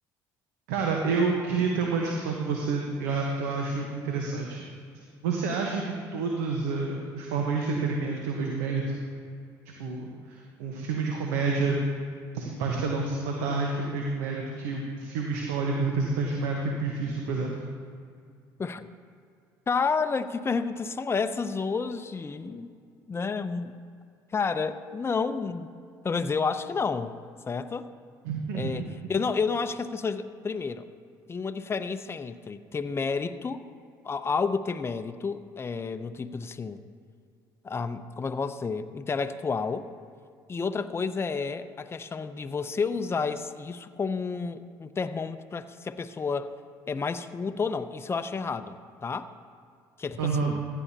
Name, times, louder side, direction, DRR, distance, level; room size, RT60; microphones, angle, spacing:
voice 1, 0.7-4.6 5.2-9.0 9.8-11.8 12.3-17.5 28.2-28.9 50.2-50.6, right 4 dB, 85° right, 0 dB, 1.1 m, -29 dB
voice 2, 19.7-22.7 23.1-23.7 24.3-25.7 26.0-27.2 27.5-27.9 28.5-30.8 31.3-33.6 34.0-36.8 37.6-39.9 40.5-46.5 46.9-48.8 49.0-49.3 50.0-50.6, left 5 dB, 25° left, 10 dB, 0.6 m, -30 dB
15.5 x 10.0 x 2.8 m, 2.3 s
hypercardioid pair, 65°, 10 cm